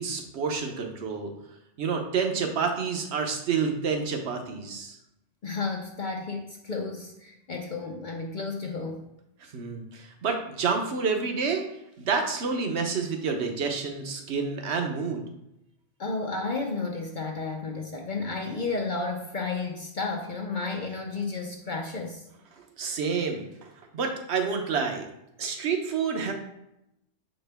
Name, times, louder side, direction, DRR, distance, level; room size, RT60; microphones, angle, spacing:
voice 1, 0.0-1.3 1.8-5.0 9.5-11.6 12.0-15.2 22.8-25.1 25.4-26.3, right 5 dB, 60° right, 4 dB, 1.1 m, -29 dB
voice 2, 5.4-9.0 16.0-22.2, left 3 dB, 50° left, 1 dB, 0.7 m, -32 dB
6.6 x 4.4 x 3.4 m, 0.84 s
omnidirectional pair, 1.3 m